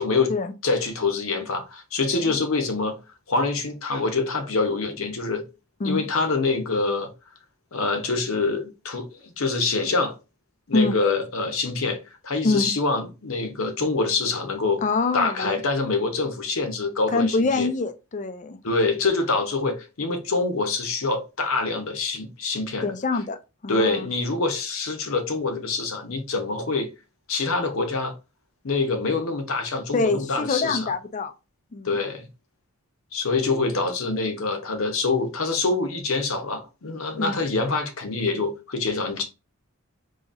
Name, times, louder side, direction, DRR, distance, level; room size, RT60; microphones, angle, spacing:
voice 1, 0.6-3.0 3.3-5.4 5.8-7.1 7.7-10.1 10.7-14.8 15.1-17.7 18.6-22.9 23.7-26.9 27.3-28.1 28.6-30.9 31.8-32.3 33.1-39.2, left 3 dB, 80° left, 0.8 m, -25 dB
voice 2, 14.8-15.6 17.1-18.6 22.8-23.4 23.6-24.1 29.9-31.3 31.7-31.9 37.2-37.4, left 3 dB, 35° left, 0.4 m, -25 dB
4.1 x 2.8 x 2.5 m
head